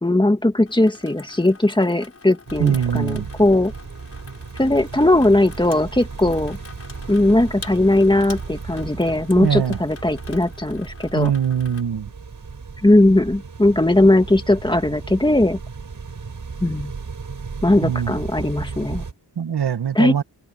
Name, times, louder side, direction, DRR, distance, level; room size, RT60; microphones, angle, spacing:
voice 1, 0.0-3.7 4.6-6.6 7.1-11.3 12.8-15.6 16.6-16.9 17.6-19.0 19.9-20.1, left 1 dB, 10° left, 1.9 m, -18 dB
Water tap faucet / Sink (filling or washing), 0.7-11.8, left 3 dB, 35° left, 6.2 m, -44 dB
sound 1, 2.5-19.1, right 5 dB, 50° right, 5.5 m, -35 dB
voice 2, 2.6-3.3 9.4-9.8 11.1-12.1 17.8-18.1 19.4-20.2, right 8 dB, 70° right, 1.6 m, -22 dB
wide cardioid pair, 155°, 41 cm